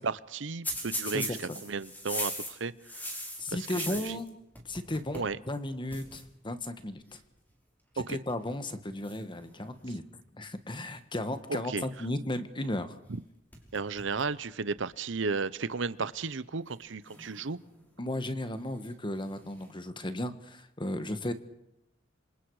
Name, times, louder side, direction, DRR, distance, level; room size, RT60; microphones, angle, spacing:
voice 1, 0.0-2.7 3.7-4.2 5.1-5.4 8.1-8.2 11.5-11.9 13.7-17.6, right 4 dB, 70° right, 16 dB, 0.8 m, -34 dB
sound 1, 0.6-4.3 4.6-5.3 5.6-5.7 5.9-6.2 7.1-7.4 8.1-8.5 9.0-10.1 13.1-13.2 13.5-14.3 14.8-14.9 15.8-15.9 17.0-17.9 19.1-19.7, equal, 10° left, 5.1 m, -40 dB
voice 2, 3.4-4.4 4.6-7.2 7.9-10.0 10.4-13.0 18.0-21.3, left 1 dB, 25° left, 10 dB, 1.5 m, -35 dB
27.0 x 26.5 x 4.9 m, 0.83 s
head